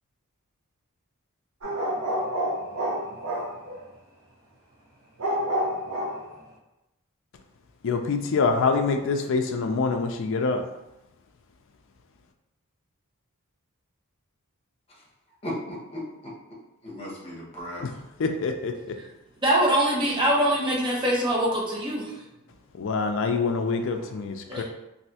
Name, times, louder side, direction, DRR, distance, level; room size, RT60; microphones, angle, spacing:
sound 1, 1.6-3.8 5.2-6.3, equal, 70° right, 0.9 m, -28 dB
voice 1, 7.8-10.6 17.8-17.9 18.2-18.7 22.7-24.6, left 4 dB, 60° left, 5 dB, 0.4 m, -25 dB
voice 2, 15.4-16.3 16.8-17.9 23.9-24.3, left 1 dB, 25° left, -5 dB, 1.0 m, -36 dB
voice 3, 19.4-22.1 24.5-24.6, right 1 dB, 20° right, -4 dB, 0.8 m, -23 dB
3.1 x 2.7 x 2.8 m, 0.95 s
head